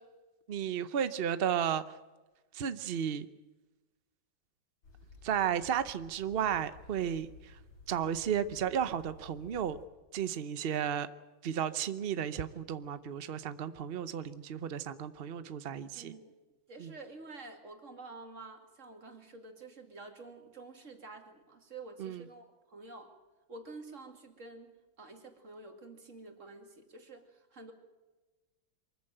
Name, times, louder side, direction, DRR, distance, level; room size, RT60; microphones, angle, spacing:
voice 1, 0.5-1.8 2.5-3.3 5.2-7.3 7.9-9.8 10.1-11.1 11.4-16.1 16.8-16.9 22.0-22.2, right 9 dB, 80° right, 13 dB, 0.5 m, -33 dB
sound 1, 4.8-9.9, left 2 dB, 70° left, 3.6 m, -55 dB
voice 2, 15.9-16.3 16.7-23.1 23.5-27.7, right 3 dB, 40° right, 4 dB, 2.7 m, -49 dB
24.0 x 14.5 x 9.0 m, 1.2 s
omnidirectional pair, 2.1 m